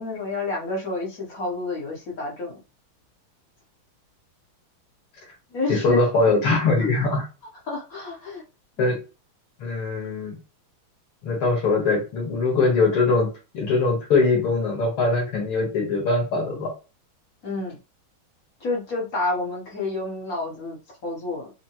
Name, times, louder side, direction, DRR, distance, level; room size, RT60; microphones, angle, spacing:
voice 1, 0.0-2.6 5.5-6.3 7.7-8.4 8.8-8.9 17.4-17.8 18.6-21.5, left 2 dB, 45° left, -2 dB, 1.5 m, -30 dB
voice 2, 5.7-7.3 8.8-9.0 9.6-10.4 11.2-16.7, left 3 dB, 80° left, -3 dB, 2.6 m, -22 dB
5.7 x 2.2 x 3.0 m, 0.30 s
omnidirectional pair, 2.4 m